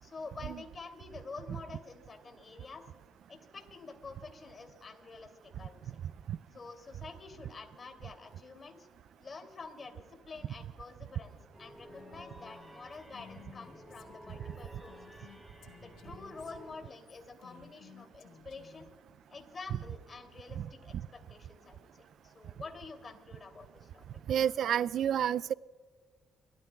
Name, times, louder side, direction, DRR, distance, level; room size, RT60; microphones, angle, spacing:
voice 1, 0.0-2.9 3.3-5.8 6.5-8.9 9.2-15.3 15.8-18.9 19.3-21.8 22.2-24.2, left 4 dB, 35° left, 5 dB, 2.7 m, -48 dB
sound 1, 11.5-16.7, equal, 10° right, 3.7 m, -53 dB
Female speech woman speaking, 11.9-18.9, left 8 dB, 85° left, 1.2 m, -57 dB
voice 2, 24.3-25.5, right 9 dB, 70° right, 18 dB, 0.3 m, -30 dB
29.0 x 13.5 x 2.3 m, 1.4 s
cardioid pair, 90°, 0 cm